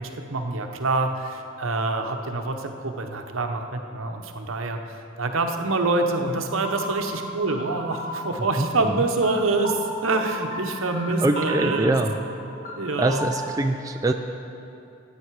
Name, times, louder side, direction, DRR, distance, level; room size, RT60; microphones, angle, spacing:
voice 1, 0.0-11.9 12.8-13.2, right 3 dB, 75° right, 5 dB, 0.9 m, -26 dB
sound 1, 6.6-13.5, equal, 45° left, 1.7 m, -35 dB
voice 2, 8.4-8.9 11.2-12.2 13.0-14.1, right 2 dB, 15° right, 5 dB, 0.3 m, -24 dB
15.0 x 9.1 x 4.7 m, 2.7 s
head